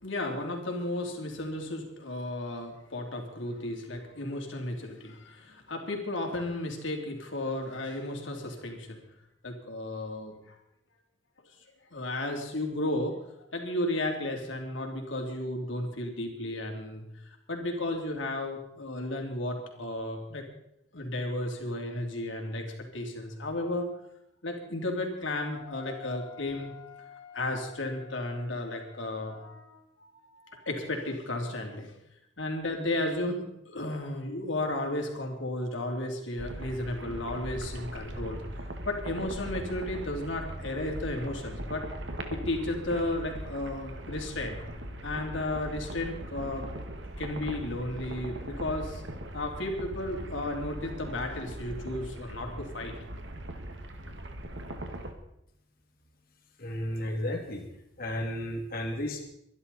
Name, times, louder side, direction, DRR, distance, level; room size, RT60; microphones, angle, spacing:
voice 1, 0.0-9.0 9.4-10.3 11.9-13.2 13.5-17.0 17.5-20.4 20.9-22.7 22.9-23.9 24.4-31.9 32.4-38.4 38.8-41.8 42.3-44.6 45.0-46.7 47.2-49.0 49.3-52.9, left 1 dB, 85° left, 2 dB, 3.3 m, -34 dB
sound 1, 36.4-55.1, right 1 dB, 75° right, 1.9 m, -40 dB
voice 2, 56.6-57.6 58.0-59.2, left 1 dB, 50° left, 2 dB, 2.8 m, -33 dB
23.5 x 11.5 x 4.2 m, 0.80 s
head